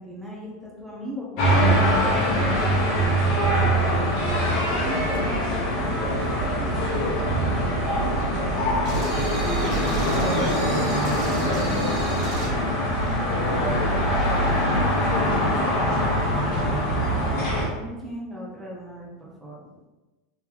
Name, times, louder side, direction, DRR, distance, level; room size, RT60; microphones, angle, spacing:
voice 1, 0.0-4.0 4.5-5.9 6.4-6.7 15.1-17.1 17.7-19.9, equal, 5° right, -5 dB, 0.9 m, -39 dB
sound 1, 1.4-17.7, equal, 40° left, 1.2 m, -23 dB
voice 2, 6.5-16.2, left 2 dB, 75° left, 2 dB, 0.7 m, -35 dB
sound 2, 8.8-12.6, right 2 dB, 35° right, 0.9 m, -34 dB
3.5 x 3.2 x 3.1 m, 1.1 s
supercardioid pair, 165°, 0 cm